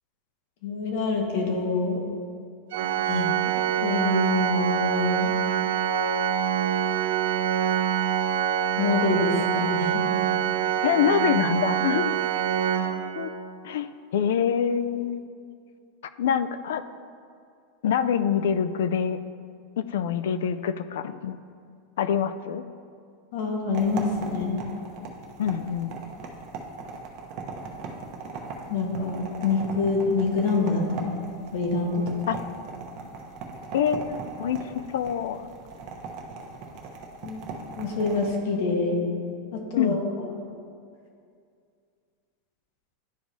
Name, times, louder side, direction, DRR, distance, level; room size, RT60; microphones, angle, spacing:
voice 1, 0.6-2.0 3.0-3.2 3.8-5.3 8.8-10.0 23.3-24.6 28.7-32.4 37.2-37.4 37.8-39.0 39.5-40.4, left 4 dB, 65° left, 1 dB, 1.3 m, -26 dB
Organ, 2.7-13.6, right 9 dB, 80° right, 0.3 m, -25 dB
voice 2, 3.1-3.4 10.8-12.2 13.2-13.3 13.6-13.9 14.1-15.3 16.2-16.8 17.8-19.2 19.8-21.4 22.0-22.6 25.4-26.0 32.3-32.4 33.7-34.6 34.9-35.5 39.8-40.0, left 8 dB, 80° left, 12 dB, 0.3 m, -25 dB
sound 1, 23.7-38.3, right 4 dB, 45° right, 0.9 m, -39 dB
11.0 x 4.6 x 2.7 m, 2.3 s
supercardioid pair, 155°, 0 cm